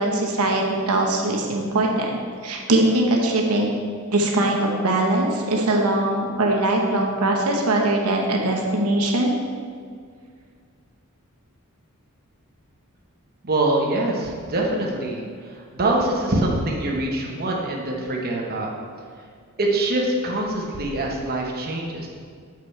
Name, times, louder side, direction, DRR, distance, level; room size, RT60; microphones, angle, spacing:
voice 1, 0.0-3.7 4.1-9.4, right 2 dB, 90° right, 0 dB, 0.9 m, -21 dB
voice 2, 13.4-18.7 19.6-22.1, right 2 dB, 45° right, -1 dB, 1.0 m, -24 dB
6.5 x 5.9 x 4.3 m, 2.1 s
head